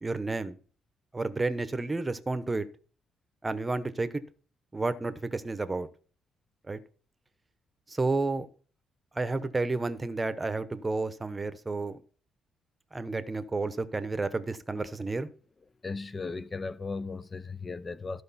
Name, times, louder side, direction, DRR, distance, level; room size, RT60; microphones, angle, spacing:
voice 1, 0.0-0.6 1.1-2.7 3.4-4.2 4.7-5.9 6.7-6.8 7.9-8.5 9.1-12.0 12.9-15.3, right 3 dB, 20° right, 0.9 m, -31 dB
voice 2, 15.8-18.2, left 4 dB, 30° left, 0.5 m, -36 dB
14.0 x 4.9 x 4.2 m
cardioid pair, 90°, 0 cm